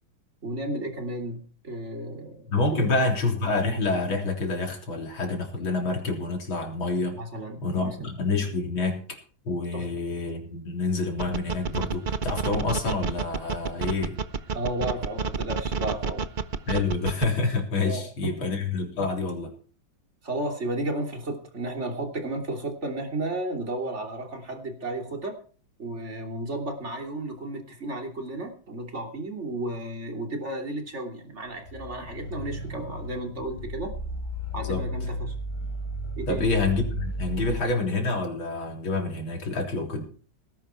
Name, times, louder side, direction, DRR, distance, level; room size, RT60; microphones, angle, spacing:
voice 1, 0.4-2.5 2.9-3.0 3.4-3.5 7.1-8.1 9.7-9.9 14.5-16.2 17.8-18.5 20.2-25.4 25.8-33.9 34.5-35.3 36.2-36.5, right 1 dB, 35° right, 3 dB, 3.3 m, -33 dB
voice 2, 2.5-7.2 7.6-9.2 9.4-14.2 16.7-19.5 34.6-34.8 36.3-40.1, left 3 dB, 85° left, 2 dB, 4.4 m, -27 dB
sound 1, 11.2-17.3, right 5 dB, 80° right, 0.4 m, -29 dB
sound 2, 31.6-37.7, equal, 55° left, 4.8 m, -34 dB
18.5 x 10.5 x 4.5 m, 0.41 s
omnidirectional pair, 2.2 m